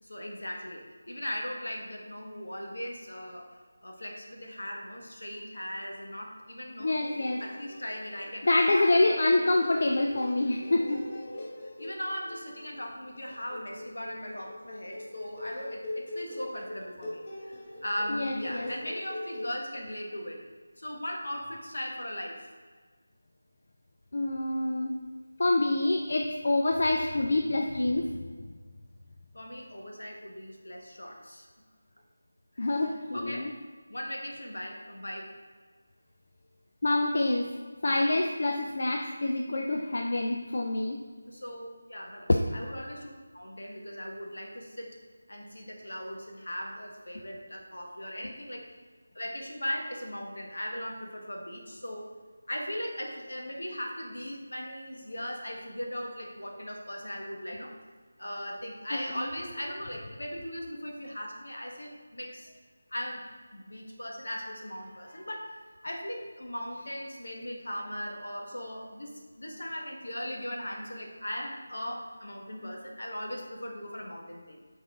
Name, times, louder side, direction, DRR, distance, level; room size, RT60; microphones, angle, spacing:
voice 1, 0.0-7.0 7.4-9.4 11.8-20.4 20.8-22.5 29.3-31.5 33.1-33.5 33.9-35.3 41.3-45.0 45.3-48.6 49.1-52.1 52.5-57.7 58.2-62.6 62.9-63.3 63.5-74.6, equal, 75° left, 1 dB, 1.3 m, -38 dB
voice 2, 6.8-7.4 8.4-11.1 18.1-18.7 24.1-25.0 25.4-28.2 32.6-33.5 36.8-37.5 37.8-41.0 42.3-42.4 58.9-59.3, left 2 dB, 55° left, 2 dB, 0.5 m, -26 dB
sound 1, 7.0-19.5, left 1 dB, 25° left, 1.3 m, -42 dB
6.9 x 4.1 x 3.6 m, 1.5 s
figure-of-eight pair, 165°, 0 cm